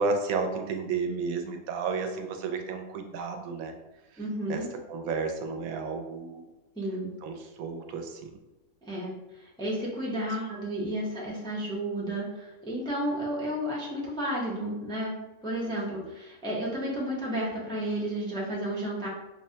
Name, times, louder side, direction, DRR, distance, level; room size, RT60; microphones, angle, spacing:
voice 1, 0.0-3.7 4.1-4.2 4.5-6.5 7.2-8.4 15.6-16.1, right 4 dB, 75° right, 5 dB, 1.0 m, -32 dB
voice 2, 4.2-4.7 6.8-7.1 8.8-9.1 9.4-15.2 15.4-19.1, right 1 dB, 5° left, -5 dB, 0.4 m, -32 dB
5.3 x 2.1 x 2.7 m, 1.1 s
omnidirectional pair, 1.5 m